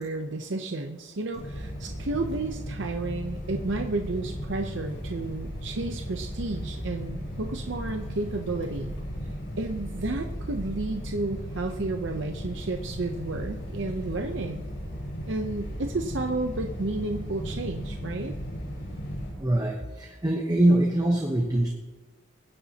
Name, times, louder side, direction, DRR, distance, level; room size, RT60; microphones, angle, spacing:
voice 1, 0.0-8.9 9.6-14.6 15.2-18.4, right 2 dB, 65° right, 4 dB, 0.7 m, -32 dB
sound 1, 1.3-19.3, equal, 65° left, 4.6 m, -36 dB
voice 2, 19.4-21.7, right 1 dB, 20° right, 1 dB, 1.0 m, -23 dB
23.5 x 10.0 x 2.9 m, 1.2 s
head